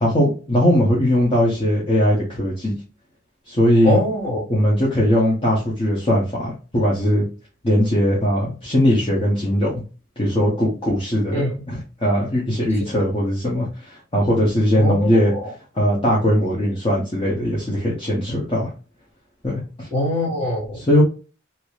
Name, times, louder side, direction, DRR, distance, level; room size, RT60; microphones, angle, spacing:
voice 1, 0.0-2.7 3.5-4.0 4.5-7.3 7.6-9.8 10.2-15.3 15.7-18.7 19.4-19.9 20.7-21.0, equal, 30° left, -5 dB, 0.9 m, -19 dB
voice 2, 3.8-4.4 11.3-11.5 14.7-15.5 19.9-20.8, left 1 dB, 10° left, -4 dB, 1.5 m, -23 dB
2.8 x 2.6 x 3.1 m, 0.34 s
head